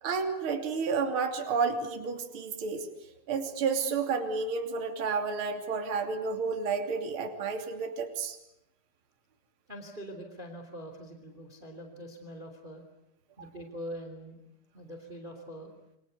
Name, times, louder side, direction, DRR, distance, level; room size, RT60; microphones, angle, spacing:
voice 1, 0.0-2.9 3.3-8.4 13.4-13.5, right 5 dB, 35° right, 5 dB, 3.3 m, -31 dB
voice 2, 9.7-12.8 13.4-14.4 14.7-15.7, equal, 15° right, 5 dB, 3.1 m, -43 dB
29.0 x 25.0 x 8.2 m, 0.84 s
omnidirectional pair, 4.6 m